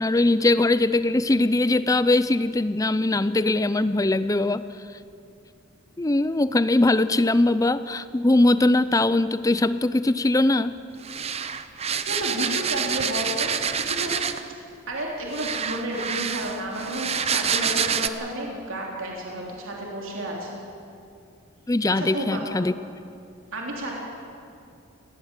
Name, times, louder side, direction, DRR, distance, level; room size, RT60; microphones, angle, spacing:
voice 1, 0.0-4.6 6.0-10.7 21.7-22.7, left 2 dB, 15° left, 14 dB, 0.5 m, -21 dB
sound 1, 11.0-14.5 15.3-18.1, right 7 dB, 30° right, 0.7 m, -27 dB
voice 2, 12.1-14.1 14.9-20.6 21.9-22.4 23.5-24.0, right 1 dB, 60° right, -2 dB, 3.3 m, -31 dB
19.5 x 17.5 x 8.2 m, 2.5 s
head